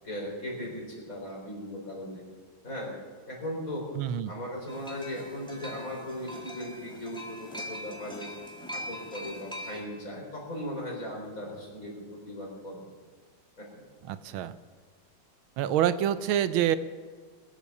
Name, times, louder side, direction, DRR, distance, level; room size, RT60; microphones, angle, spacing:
voice 1, 0.0-2.3 2.6-3.0 3.3-3.9 4.2-8.3 8.7-12.8 13.6-13.8, left 1 dB, 40° left, -1 dB, 4.3 m, -38 dB
voice 2, 4.0-4.3 14.1-14.5 15.6-16.8, right 10 dB, 85° right, 13 dB, 1.5 m, -26 dB
sound 1, 4.7-9.8, equal, ahead, 2.1 m, -42 dB
21.0 x 8.4 x 7.0 m, 1.6 s
omnidirectional pair, 2.2 m